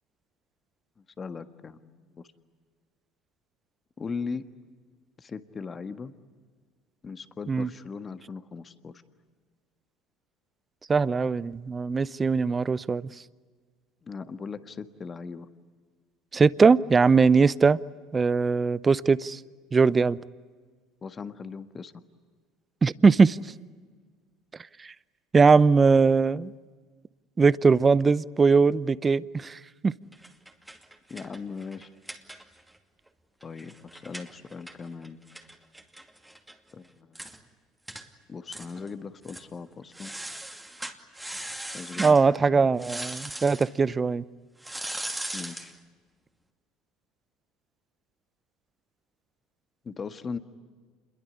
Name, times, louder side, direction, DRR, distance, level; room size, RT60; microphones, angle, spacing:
voice 1, 1.2-2.2 4.0-4.4 5.2-6.1 7.0-8.9 14.0-15.5 21.0-21.9 31.1-31.9 33.4-35.2 36.7-37.2 38.3-40.1 41.7-42.7 45.3-45.7 49.8-50.4, left 5 dB, 30° left, 1.7 m, -38 dB
voice 2, 10.9-13.1 16.3-17.8 18.1-19.4 19.7-20.2 22.8-23.4 24.8-24.9 25.3-26.5 27.4-29.9 42.0-44.2, right 4 dB, 25° right, 0.7 m, -21 dB
sound 1, 30.1-32.8 33.1-33.2 33.4-36.5 36.8-36.9 37.1-37.4 37.9-38.1 38.5-38.9 39.2-39.5 39.9-42.2 42.8-43.7 44.6-45.7, right 1 dB, 5° right, 2.6 m, -39 dB
27.5 x 22.5 x 9.8 m
hypercardioid pair, 80°, 0 cm